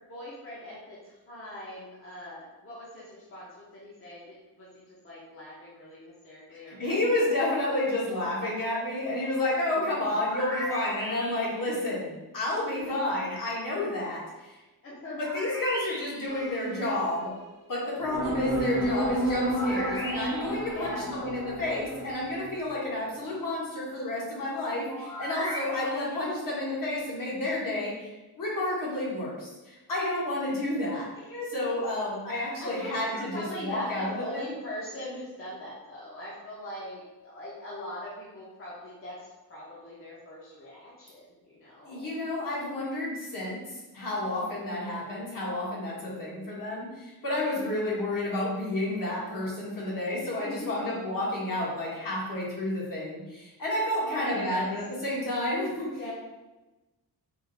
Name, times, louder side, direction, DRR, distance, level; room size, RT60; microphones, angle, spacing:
voice 1, 0.1-7.0 9.7-10.2 12.7-13.0 14.8-15.2 20.7-21.1 26.1-26.4 31.3-31.8 32.6-42.1 44.4-44.9 46.1-46.3 47.5-47.6 50.2-51.0 54.0-54.7 55.9-56.1, left 1 dB, 35° left, -7 dB, 0.8 m, -41 dB
voice 2, 6.7-14.6 15.2-17.3 17.7-28.1 28.4-31.1 31.5-34.5 41.8-43.6 43.9-55.9, left 1 dB, 60° left, -5 dB, 1.3 m, -30 dB
sound 1, 10.0-11.7 15.2-16.4 19.5-20.7 24.9-26.2, equal, 10° left, 0.3 m, -37 dB
sound 2, 16.3-17.4 18.0-22.7, right 1 dB, 40° right, 0.8 m, -32 dB
3.7 x 2.5 x 3.8 m, 1.1 s
wide cardioid pair, 175°, 38 cm